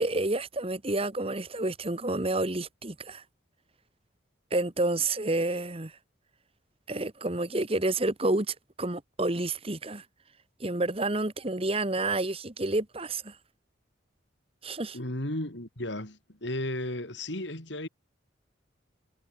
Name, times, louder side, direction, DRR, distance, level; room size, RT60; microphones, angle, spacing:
voice 1, 0.0-3.2 4.5-5.9 6.9-10.0 10.6-13.4 14.6-15.0, right 2 dB, 30° right, 1.5 m, -29 dB
voice 2, 14.9-17.9, left 1 dB, 65° left, 4.6 m, -34 dB
head